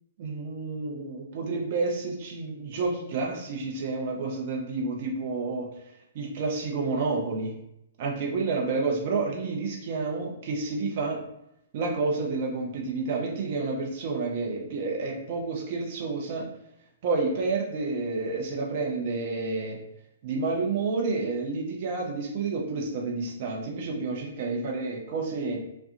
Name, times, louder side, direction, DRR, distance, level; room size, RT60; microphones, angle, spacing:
voice 1, 0.2-5.7 6.1-7.5 8.0-11.2 11.7-16.5 17.0-19.8 20.2-25.6, right 3 dB, 45° right, 0 dB, 0.6 m, -29 dB
2.4 x 2.2 x 2.7 m, 0.81 s
figure-of-eight pair, 120°, 0 cm